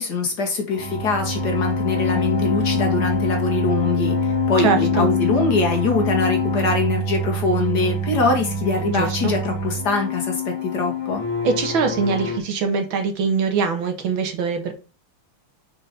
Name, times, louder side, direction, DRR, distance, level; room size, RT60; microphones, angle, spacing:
voice 1, 0.0-11.2, left 3 dB, 50° left, 1.6 m, -23 dB
sound 1, 0.7-12.4, left 2 dB, 70° left, 2.3 m, -24 dB
voice 2, 4.6-5.1 8.9-9.3 11.4-14.7, right 5 dB, 65° right, 1.9 m, -22 dB
5.2 x 4.5 x 5.1 m
omnidirectional pair, 2.4 m